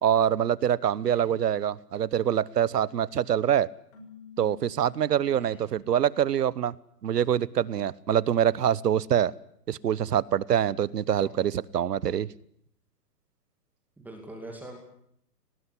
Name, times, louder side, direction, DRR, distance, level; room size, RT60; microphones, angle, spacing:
voice 1, 0.0-3.7 4.4-6.7 7.0-9.3 9.7-12.3, right 9 dB, 75° right, 21 dB, 1.1 m, -25 dB
Keyboard (musical), 3.9-5.9, left 7 dB, 60° left, 6.4 m, -51 dB
voice 2, 5.3-5.7 11.2-11.3 14.0-14.8, right 2 dB, 5° right, 1 dB, 2.5 m, -43 dB
19.0 x 19.0 x 10.0 m, 0.69 s
hypercardioid pair, 160°, 48 cm